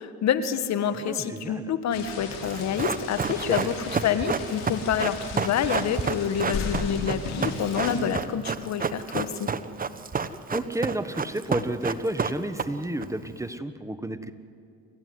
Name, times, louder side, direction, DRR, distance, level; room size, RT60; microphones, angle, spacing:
voice 1, 0.0-9.5, left 8 dB, 60° left, 11 dB, 1.6 m, -27 dB
voice 2, 1.0-1.7 3.5-3.6 10.5-14.3, right 1 dB, 10° right, 11 dB, 1.4 m, -31 dB
sound 1, 1.9-8.0, left 4 dB, 85° left, 5.5 m, -38 dB
Run, 2.4-13.0 13.3-13.4, right 5 dB, 25° right, 1.1 m, -30 dB
sound 2, 6.0-7.9, left 5 dB, 45° left, 3.1 m, -36 dB
28.5 x 14.5 x 9.6 m, 2.3 s
supercardioid pair, 75°, 31 cm